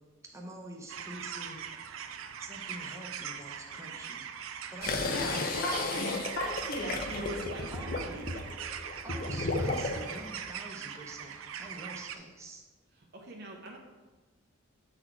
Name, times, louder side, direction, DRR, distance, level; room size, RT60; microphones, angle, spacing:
voice 1, 0.3-1.7 2.4-4.3 4.7-5.5 7.7-8.2 9.0-12.6, right 1 dB, 15° right, 0 dB, 0.8 m, -46 dB
sound 1, 0.9-12.2, right 8 dB, 80° right, 0.5 m, -41 dB
sound 2, 4.8-10.2, left 3 dB, 45° left, 0.6 m, -34 dB
voice 2, 5.1-7.2, equal, 65° left, -5 dB, 1.1 m, -36 dB
voice 3, 7.1-8.5 12.9-13.8, right 1 dB, 50° right, 0 dB, 0.8 m, -43 dB
7.7 x 4.1 x 4.5 m, 1.3 s
head